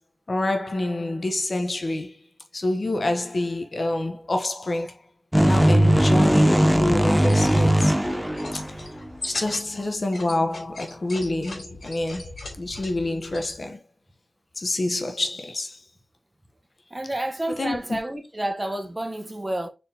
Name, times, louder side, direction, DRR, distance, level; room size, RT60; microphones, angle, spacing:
voice 1, 0.3-2.2 2.5-4.9 5.3-7.9 9.2-13.8 14.6-15.8 17.6-18.0, left 2 dB, 55° left, 0.8 m, -27 dB
sound 1, 5.3-9.1, right 1 dB, 5° right, 0.5 m, -19 dB
sound 2, 7.1-13.6, left 2 dB, 70° left, 2.5 m, -39 dB
voice 2, 16.9-19.7, right 1 dB, 25° right, 0.9 m, -30 dB
4.3 x 3.5 x 2.8 m
cardioid pair, 50°, 0 cm